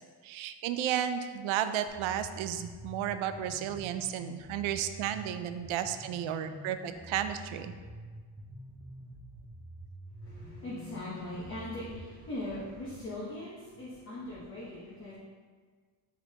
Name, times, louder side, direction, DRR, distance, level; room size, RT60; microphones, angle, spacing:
voice 1, 0.2-7.7, right 10 dB, 85° right, 9 dB, 0.5 m, -33 dB
sound 1, 1.9-12.0, right 1 dB, 10° right, 0.7 m, -47 dB
voice 2, 10.2-15.2, left 1 dB, 25° left, -7 dB, 0.9 m, -40 dB
9.4 x 3.5 x 2.8 m, 1.5 s
cardioid pair, 170°, 46 cm